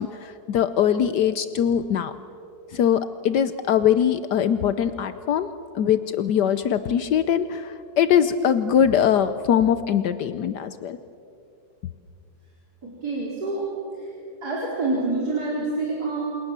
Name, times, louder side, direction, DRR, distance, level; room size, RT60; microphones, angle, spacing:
voice 1, 0.0-2.1 2.7-5.5 5.7-11.0, left 9 dB, 70° left, 12 dB, 1.4 m, -22 dB
voice 2, 12.8-13.6 14.0-14.1 14.4-16.2, right 2 dB, 60° right, -4 dB, 4.8 m, -27 dB
28.5 x 27.5 x 7.4 m, 2.6 s
omnidirectional pair, 1.9 m